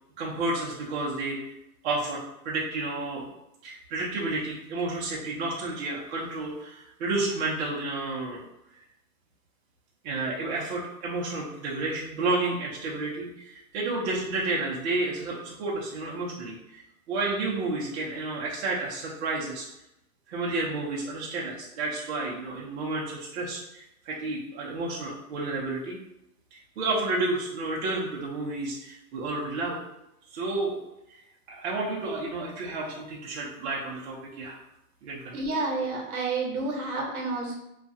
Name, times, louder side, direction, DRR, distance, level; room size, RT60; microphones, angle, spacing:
voice 1, 0.2-1.4 1.8-3.3 3.6-8.4 10.0-16.8 17.1-19.7 20.3-26.0 26.5-29.8 30.3-30.8 31.5-34.5 35.0-35.3, right 2 dB, 50° right, -5 dB, 0.6 m, -31 dB
voice 2, 35.3-37.6, right 3 dB, 75° right, 0 dB, 1.0 m, -30 dB
2.3 x 2.3 x 2.6 m, 0.86 s
hypercardioid pair, 145°, 45 cm